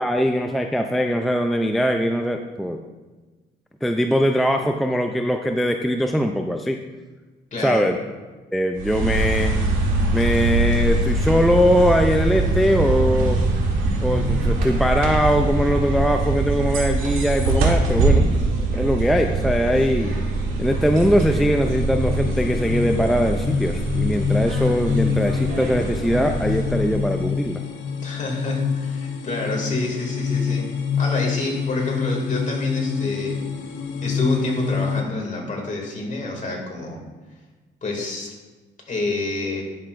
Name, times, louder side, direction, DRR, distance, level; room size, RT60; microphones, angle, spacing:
voice 1, 0.0-2.8 3.8-6.8 7.6-8.0 8.5-9.5 10.1-13.4 14.0-18.3 18.7-20.2 20.6-27.6, equal, ahead, 4 dB, 0.4 m, -21 dB
voice 2, 7.5-8.0 28.0-30.7 31.0-33.5 34.0-37.0 37.8-38.4 38.9-39.6, left 2 dB, 40° left, 0 dB, 2.4 m, -27 dB
sound 1, 8.7-27.2, right 2 dB, 90° right, 1.5 m, -23 dB
sound 2, 20.1-35.0, left 6 dB, 75° left, 0.9 m, -27 dB
10.5 x 6.6 x 2.5 m, 1.3 s
cardioid pair, 90°, 20 cm